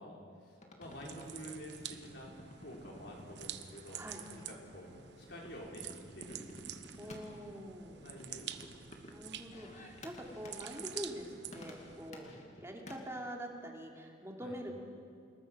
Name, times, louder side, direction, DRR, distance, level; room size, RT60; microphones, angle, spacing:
voice 1, 0.0-2.3 2.6-4.0 4.3-4.9 5.2-6.5 6.9-7.3 7.9-8.5 8.8-9.0 9.5-10.0 12.2-12.4 14.4-14.6, equal, 60° left, -2 dB, 5.7 m, -50 dB
sound 1, 0.6-13.0, left 1 dB, 40° left, 2.6 m, -54 dB
sound 2, 0.8-12.1, right 10 dB, 65° right, 1.1 m, -48 dB
voice 2, 7.0-8.0 9.1-12.3 12.6-14.8, equal, 15° right, 0 dB, 3.0 m, -45 dB
29.0 x 20.5 x 6.3 m, 2.5 s
head